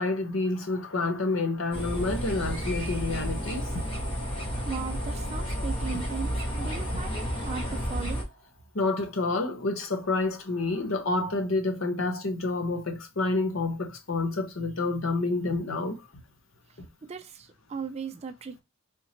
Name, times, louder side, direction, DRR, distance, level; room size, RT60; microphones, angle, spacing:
voice 1, 0.0-3.7 8.7-16.0, left 2 dB, 60° left, 0.8 m, -28 dB
sound 1, 1.3-8.7, equal, 55° right, 0.9 m, -46 dB
sound 2, 1.7-8.2, equal, 25° left, 1.1 m, -31 dB
voice 2, 4.7-8.3 17.0-18.6, right 5 dB, 30° right, 0.3 m, -37 dB
3.6 x 2.8 x 2.8 m
head